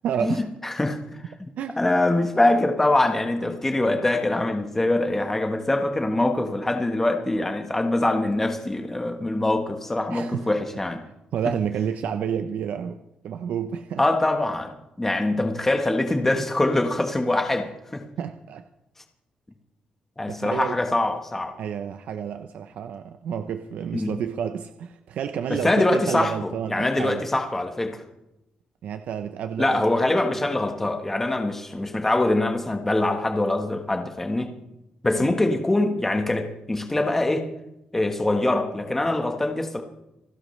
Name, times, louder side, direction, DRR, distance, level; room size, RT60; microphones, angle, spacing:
voice 1, 0.0-0.5 1.6-1.8 10.1-10.5 11.3-13.0 13.2-14.0 15.4-15.5 18.2-18.6 20.3-20.8 21.6-27.2 28.8-30.4 35.1-35.4, right 8 dB, 75° right, 8 dB, 0.7 m, -30 dB
voice 2, 0.6-1.0 1.8-11.0 14.0-18.0 20.2-21.5 23.9-24.1 25.5-28.0 29.6-34.5 35.0-37.5 37.9-39.8, left 2 dB, 10° left, 5 dB, 1.3 m, -23 dB
28.0 x 12.5 x 3.2 m, 0.91 s
wide cardioid pair, 150°, 3 cm